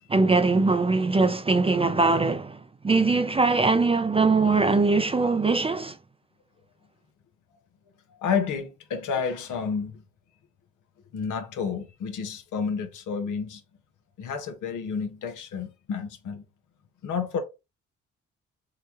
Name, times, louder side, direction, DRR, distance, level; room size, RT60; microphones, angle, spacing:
voice 1, 0.1-2.6 2.8-6.0, right 3 dB, 20° right, 0.5 m, -21 dB
voice 2, 8.1-10.0 11.1-13.6 14.2-16.4 17.0-17.4, left 6 dB, 70° left, 0.9 m, -30 dB
3.8 x 2.2 x 2.9 m
hypercardioid pair, 50°, 32 cm